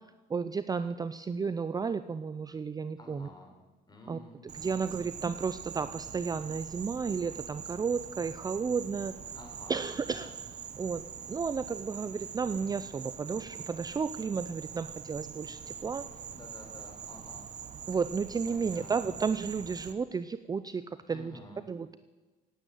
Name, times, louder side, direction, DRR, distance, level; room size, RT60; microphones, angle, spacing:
voice 1, 0.3-3.3 4.1-9.1 9.7-10.3 10.8-11.0 11.3-16.0 17.9-20.8 21.1-21.3 21.7-22.0, right 5 dB, 20° right, 12 dB, 0.5 m, -33 dB
voice 2, 3.0-3.5 3.9-5.5 9.3-10.3 16.3-17.5 18.5-18.9 21.1-21.7, left 1 dB, 25° left, 3 dB, 4.5 m, -51 dB
Insect, 4.5-19.9, right 8 dB, 45° right, 1.3 m, -43 dB
17.0 x 9.1 x 9.1 m, 1.3 s
cardioid pair, 110°, 17 cm